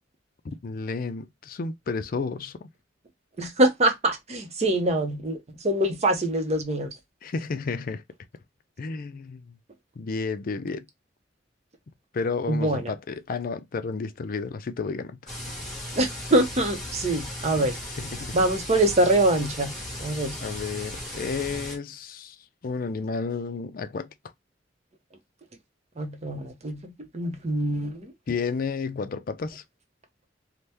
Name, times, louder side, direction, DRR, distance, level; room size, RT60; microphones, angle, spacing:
voice 1, 0.4-2.6 7.2-8.0 8.8-9.6 10.0-10.9 12.1-15.2 17.5-18.4 20.4-22.4 22.6-24.1 28.3-29.6, left 4 dB, 50° left, 0.4 m, -32 dB
voice 2, 3.4-5.4 5.6-7.0 12.5-12.8 16.0-17.8 18.3-19.7 20.0-20.4 26.0-28.1, right 1 dB, 35° right, 0.7 m, -24 dB
sound 1, 15.3-21.8, left 1 dB, ahead, 1.3 m, -36 dB
2.8 x 2.1 x 3.3 m
head